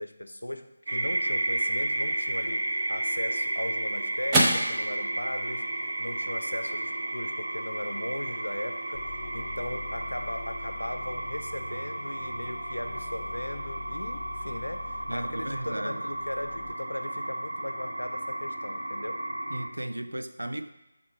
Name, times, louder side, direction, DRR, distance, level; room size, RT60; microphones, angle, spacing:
voice 1, 0.0-5.7 6.0-14.8 15.1-19.2, left 1 dB, 80° left, 9 dB, 0.5 m, -38 dB
sound 1, 0.9-19.7, right 1 dB, 55° right, 1.0 m, -33 dB
sound 2, 3.0-11.6, right 1 dB, 15° right, 0.6 m, -34 dB
sound 3, 8.9-16.7, left 3 dB, 40° left, 0.8 m, -44 dB
voice 2, 15.1-16.1 19.5-20.7, right 1 dB, 75° right, 10 dB, 0.4 m, -35 dB
6.4 x 3.6 x 4.7 m, 1.0 s
figure-of-eight pair, 160°, 0 cm